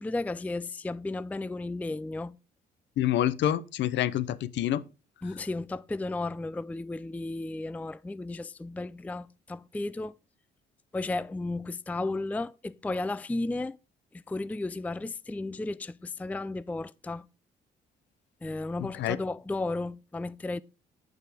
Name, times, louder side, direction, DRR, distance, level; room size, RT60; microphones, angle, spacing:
voice 1, 0.0-2.4 5.2-10.1 10.9-13.8 14.1-17.3 18.4-20.6, left 2 dB, 10° left, 0.4 m, -34 dB
voice 2, 3.0-4.8 18.9-19.2, left 12 dB, 70° left, 0.7 m, -27 dB
9.3 x 5.4 x 4.9 m
supercardioid pair, 60°, 19 cm